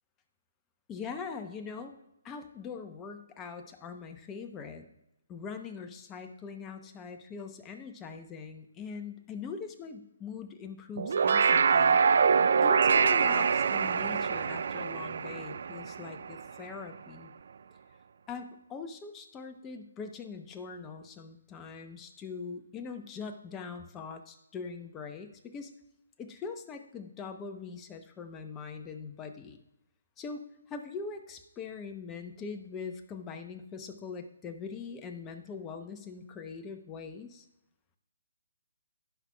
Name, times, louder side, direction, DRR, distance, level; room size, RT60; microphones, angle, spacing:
voice 1, 0.9-1.9 2.2-4.9 5.3-12.0 12.6-17.3 18.3-25.7 26.2-29.6 30.2-37.5, left 5 dB, 15° left, 6 dB, 0.8 m, -42 dB
sound 1, 11.0-16.5, right 6 dB, 60° right, 0.3 m, -25 dB
17.0 x 5.8 x 2.3 m, 0.86 s
figure-of-eight pair, 145°, 0 cm